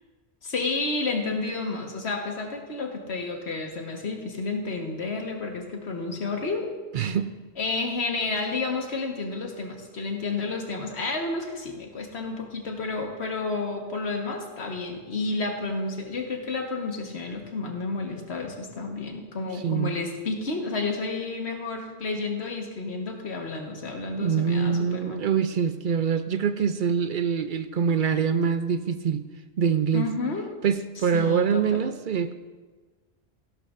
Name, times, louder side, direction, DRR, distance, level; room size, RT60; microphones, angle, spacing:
voice 1, 0.4-6.7 7.6-25.2 29.9-30.5 31.1-31.8, left 3 dB, 85° left, 2 dB, 1.6 m, -31 dB
voice 2, 6.9-7.3 19.5-19.9 24.2-29.2 29.6-30.1 30.6-32.3, right 7 dB, 60° right, 11 dB, 0.6 m, -24 dB
16.0 x 11.5 x 2.5 m, 1.4 s
omnidirectional pair, 1.1 m